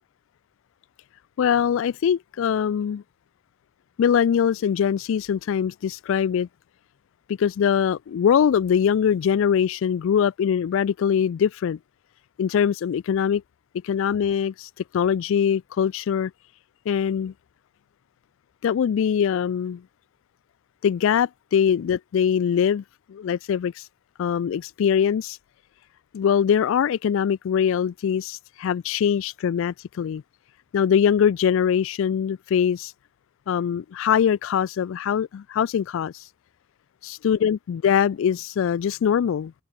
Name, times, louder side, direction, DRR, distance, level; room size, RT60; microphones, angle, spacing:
voice 1, 1.4-3.0 4.0-6.5 7.3-11.8 12.4-13.4 13.8-16.3 16.9-17.3 18.6-19.8 20.8-22.8 23.1-23.9 24.2-25.4 26.1-30.2 30.7-32.9 33.5-36.3 37.0-39.5, left 8 dB, 70° left, 0.3 m, -22 dB
open air
head